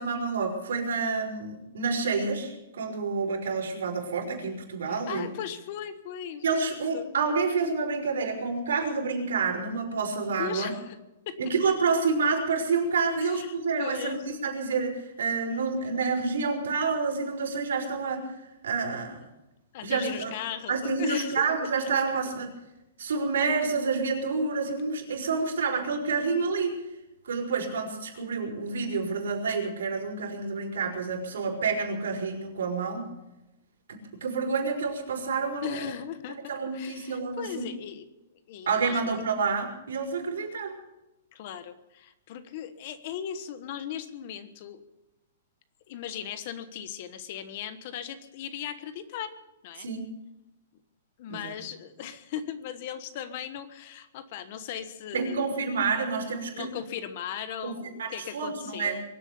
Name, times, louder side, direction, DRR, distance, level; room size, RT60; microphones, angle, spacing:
voice 1, 0.0-5.3 6.4-10.7 11.4-18.3 18.6-19.3 19.8-20.3 20.7-22.5 23.0-26.8 27.2-33.1 33.9-35.9 36.5-37.7 38.7-40.8 49.8-50.1 51.3-51.5 55.1-56.7 57.6-59.0, right 4 dB, 85° right, 0 dB, 5.6 m, -28 dB
voice 2, 4.9-7.1 10.4-11.0 11.3-11.4 13.2-14.2 19.7-21.5 21.8-21.9 35.6-38.0 38.5-39.1 41.3-44.8 45.9-49.4 49.6-49.9 51.2-55.6 56.5-59.0, left 9 dB, 35° left, 12 dB, 1.2 m, -38 dB
23.5 x 8.2 x 7.0 m, 0.95 s
hypercardioid pair, 175°, 0 cm